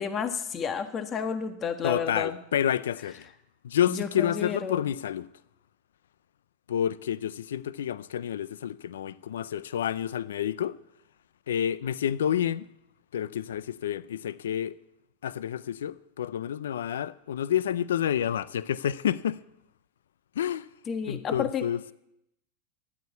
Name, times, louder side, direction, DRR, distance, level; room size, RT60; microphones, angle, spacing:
voice 1, 0.0-2.4 3.9-4.8 20.9-21.6, left 6 dB, 30° left, 1.4 m, -31 dB
voice 2, 1.8-3.3 3.6-5.3 6.7-10.8 11.5-12.7 13.1-14.7 15.2-19.4 20.4-20.7 21.1-21.8, left 9 dB, 85° left, 0.5 m, -29 dB
13.0 x 9.3 x 8.3 m
hypercardioid pair, 115°, 0 cm